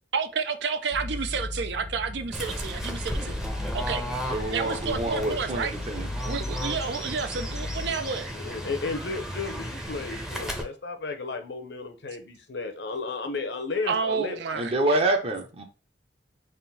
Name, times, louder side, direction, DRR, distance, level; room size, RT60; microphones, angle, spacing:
voice 1, 0.1-3.4 3.7-4.1 4.5-5.7 6.3-8.3 13.9-15.0, right 5 dB, 70° right, 0.4 m, -30 dB
sound 1, 0.9-7.9, left 2 dB, 90° left, 1.0 m, -36 dB
Fowl / Bird, 2.3-10.6, equal, 5° right, 0.6 m, -35 dB
voice 2, 4.3-6.1 14.5-15.6, right 1 dB, 35° right, 0.8 m, -27 dB
voice 3, 8.3-14.4, left 4 dB, 65° left, 0.7 m, -33 dB
3.7 x 2.6 x 4.0 m
head